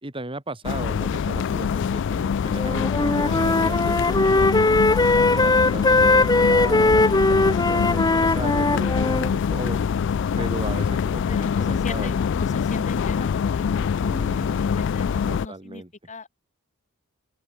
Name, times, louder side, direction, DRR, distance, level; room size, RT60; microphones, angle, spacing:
voice 1, 0.0-4.7 5.3-9.8 10.4-12.2 14.1-14.6 15.3-15.9, right 2 dB, 25° right, 2.7 m, -36 dB
sound 1, 0.6-15.5, left 6 dB, 55° left, 0.3 m, -24 dB
Wind instrument woodwind instrument, 2.5-9.3, left 2 dB, 20° left, 1.2 m, -20 dB
voice 2, 11.3-15.8 16.1-16.3, left 2 dB, 35° left, 5.5 m, -39 dB
open air
head